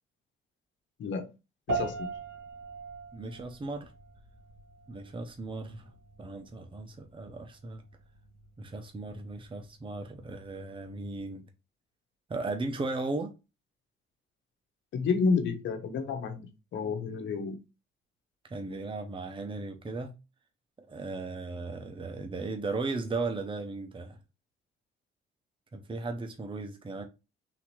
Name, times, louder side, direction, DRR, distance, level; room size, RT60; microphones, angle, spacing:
voice 1, 1.7-2.1 14.9-16.5 16.7-17.6, left 5 dB, 70° left, 1.2 m, -30 dB
sound 1, 1.7-11.3, right 3 dB, 85° right, 1.8 m, -41 dB
voice 2, 3.1-3.9 4.9-5.9 6.2-7.8 8.6-11.4 12.3-13.3 18.4-20.1 20.9-24.2 25.7-27.1, right 3 dB, 25° right, 0.8 m, -36 dB
4.0 x 2.9 x 4.3 m
cardioid pair, 90°, 20 cm